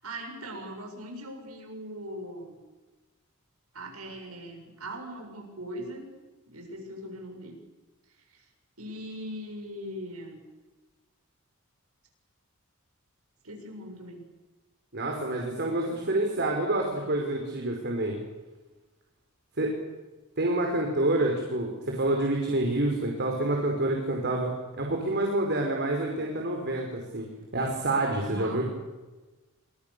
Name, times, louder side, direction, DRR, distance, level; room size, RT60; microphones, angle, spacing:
voice 1, 0.0-2.6 3.7-6.1 6.5-7.6 8.3-8.5 8.8-10.4 13.4-14.2 28.2-28.6, equal, 90° right, 3 dB, 7.7 m, -40 dB
voice 2, 14.9-18.2 19.6-19.8 20.4-24.5 24.8-27.3 27.5-28.6, right 2 dB, 50° right, 1 dB, 5.1 m, -27 dB
29.0 x 26.5 x 7.0 m, 1.2 s
head